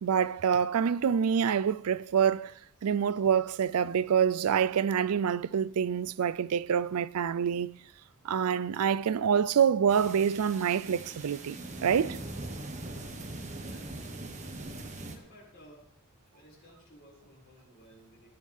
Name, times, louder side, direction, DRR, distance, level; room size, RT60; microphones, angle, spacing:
voice 1, 0.0-2.5 2.8-7.7 8.2-12.2, right 7 dB, 75° right, 0.4 m, -26 dB
sound 1, 9.9-15.2, right 2 dB, 30° right, 1.5 m, -41 dB
voice 2, 13.5-14.0 15.0-15.8 16.3-18.3, equal, 50° left, 5.8 m, -56 dB
21.5 x 9.3 x 3.6 m
head